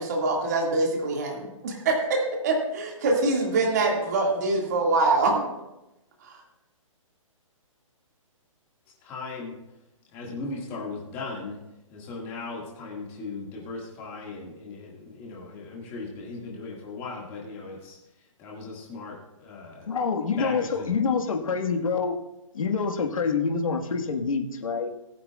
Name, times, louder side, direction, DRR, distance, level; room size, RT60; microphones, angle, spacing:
voice 1, 0.0-5.4, right 3 dB, 30° right, -1 dB, 2.2 m, -24 dB
voice 2, 9.0-9.5 10.1-11.6 11.9-18.0 18.4-19.9 20.4-21.0, left 3 dB, 15° left, -3 dB, 2.0 m, -38 dB
voice 3, 19.9-22.1 22.5-24.9, left 5 dB, 75° left, 3 dB, 1.7 m, -26 dB
20.5 x 8.3 x 2.4 m, 0.93 s
hypercardioid pair, 180°, 18 cm